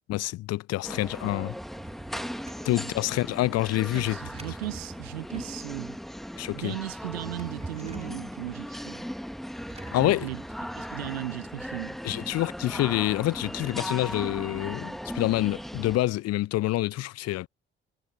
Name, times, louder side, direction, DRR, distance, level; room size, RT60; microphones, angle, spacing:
voice 1, 0.1-1.6 2.6-4.2 6.4-6.8 9.9-10.3 12.0-17.5, left 17 dB, 55° left, 0.8 m, -27 dB
sound 1, 0.8-16.0, equal, ahead, 1.9 m, -38 dB
Drawer open or close, 1.4-2.8 3.9-5.6 6.9-8.2 9.5-11.2, right 3 dB, 20° right, 4.6 m, -45 dB
voice 2, 3.9-6.0 6.5-9.0 9.9-10.4 10.7-12.0, right 16 dB, 75° right, 1.1 m, -37 dB
figure-of-eight pair, 40°, 31 cm